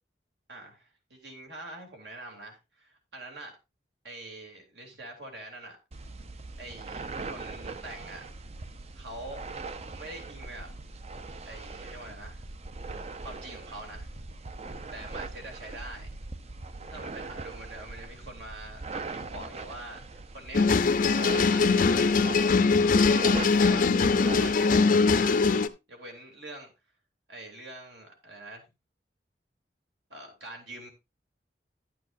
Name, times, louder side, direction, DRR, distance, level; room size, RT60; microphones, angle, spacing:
voice 1, 0.5-3.6 4.0-5.8 6.6-8.2 8.9-9.4 9.9-10.7 11.5-12.4 13.2-14.1 14.9-16.1 16.9-20.7 21.3-22.2 22.8-25.5 25.9-26.7 27.3-28.7 30.1-30.9, right 2 dB, 75° right, 2 dB, 2.9 m, -44 dB
sound 1, 5.9-24.5, right 3 dB, 40° right, 0.6 m, -40 dB
sound 2, 20.5-25.7, left 4 dB, 50° left, 0.6 m, -22 dB
11.0 x 9.2 x 2.6 m, 0.24 s
head